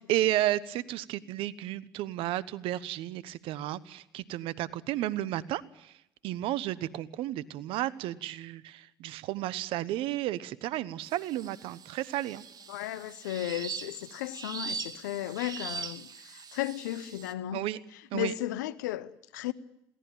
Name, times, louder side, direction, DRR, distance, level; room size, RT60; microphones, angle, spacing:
voice 1, 0.0-5.9 6.2-12.5 17.5-17.8 18.1-18.3, right 14 dB, 70° right, 1.1 m, -32 dB
sound 1, 11.0-17.3, right 5 dB, 45° right, 1.8 m, -42 dB
voice 2, 12.7-16.1 16.5-17.7 18.1-19.5, left 13 dB, 85° left, 0.9 m, -34 dB
22.5 x 17.5 x 9.0 m
hypercardioid pair, 60°, 10 cm